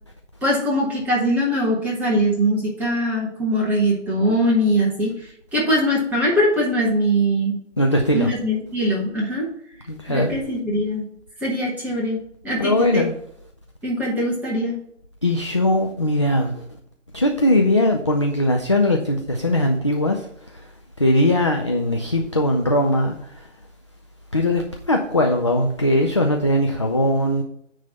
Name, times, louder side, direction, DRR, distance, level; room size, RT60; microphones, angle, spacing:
voice 1, 0.4-5.1 5.5-7.6 8.1-9.4 10.1-11.1 11.4-13.0 13.8-14.8, equal, 5° right, 1.1 m, -21 dB
voice 2, 7.8-8.3 9.9-10.3 12.6-13.1 15.2-16.6 17.1-20.3 21.0-23.3 24.3-24.6 24.9-27.4, left 1 dB, 25° left, 0.4 m, -20 dB
9.5 x 3.3 x 5.5 m
figure-of-eight pair, 145°, 37 cm